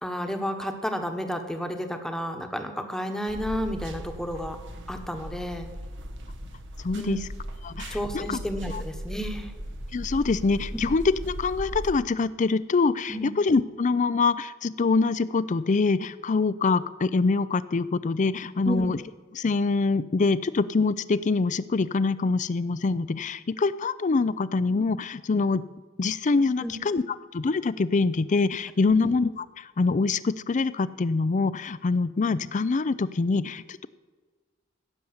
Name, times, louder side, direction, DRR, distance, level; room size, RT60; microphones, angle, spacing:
voice 1, 0.0-4.6 4.9-5.7 6.9-7.2 7.9-9.5 10.7-10.8 13.1-13.3 18.6-18.9 26.6-26.7 28.8-29.1, equal, 5° left, 5 dB, 1.2 m, -31 dB
sound 1, 3.3-11.9, equal, 65° right, 1.2 m, -38 dB
voice 2, 6.8-7.2 7.6-8.4 8.7-8.8 9.9-19.0 19.3-25.6 26.0-27.0 27.3-33.9, left 4 dB, 40° left, 17 dB, 0.5 m, -25 dB
16.0 x 7.0 x 7.9 m, 1.4 s
head